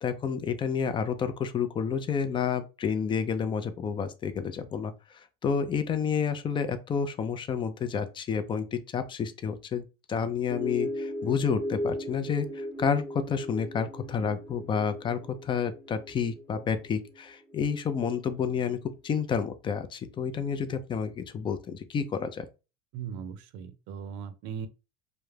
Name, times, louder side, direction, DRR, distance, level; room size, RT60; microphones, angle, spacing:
voice 1, 0.0-18.8 19.0-22.5, left 6 dB, 25° left, 0.4 m, -30 dB
sound 1, 10.5-18.2, equal, ahead, 0.7 m, -38 dB
voice 2, 22.9-24.7, right 7 dB, 75° right, 0.5 m, -38 dB
2.3 x 2.0 x 3.1 m
supercardioid pair, 115°, 20 cm